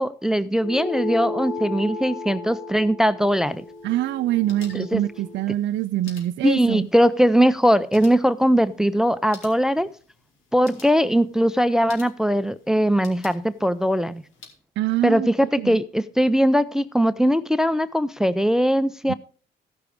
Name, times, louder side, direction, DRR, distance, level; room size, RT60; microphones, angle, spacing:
voice 1, 0.0-3.6 4.7-5.0 6.4-9.9 10.5-14.2 15.0-19.1, equal, 5° right, 0.5 m, -20 dB
sound 1, 0.6-5.4, left 3 dB, 55° left, 2.5 m, -34 dB
sound 2, 3.4-14.6, left 4 dB, 85° left, 2.9 m, -51 dB
voice 2, 3.8-6.9 14.8-15.3 15.6-15.8 19.1-19.2, right 14 dB, 65° right, 0.4 m, -24 dB
14.0 x 6.0 x 5.0 m
cardioid pair, 90°, 20 cm